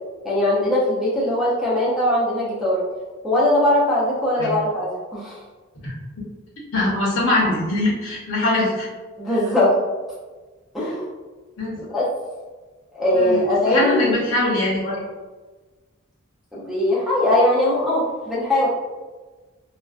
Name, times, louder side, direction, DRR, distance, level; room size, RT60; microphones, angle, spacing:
voice 1, 0.2-2.8 3.2-5.4 9.2-9.8 10.7-11.1 11.9-12.0 12.9-14.1 16.5-18.7, left 1 dB, ahead, -8 dB, 0.5 m, -20 dB
voice 2, 6.7-8.9 11.6-11.8 13.1-15.0, left 2 dB, 65° left, -5 dB, 0.8 m, -22 dB
2.4 x 2.1 x 2.3 m, 1.3 s
head